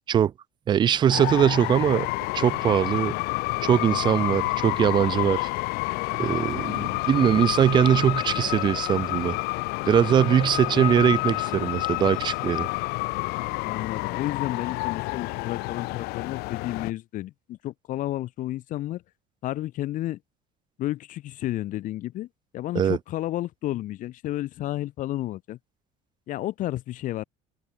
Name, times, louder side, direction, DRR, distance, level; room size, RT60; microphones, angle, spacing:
voice 1, 0.7-2.1 2.3-3.2 3.6-5.5 6.2-9.4 9.9-12.7 22.7-23.0, right 9 dB, 30° right, 0.4 m, -21 dB
sound 1, 1.1-16.9, left 24 dB, 75° left, 1.0 m, -29 dB
voice 2, 6.6-7.1 13.6-19.0 19.4-20.2 20.8-22.3 22.5-25.6 26.3-27.2, left 15 dB, 55° left, 1.7 m, -31 dB
cardioid pair, 145°, 17 cm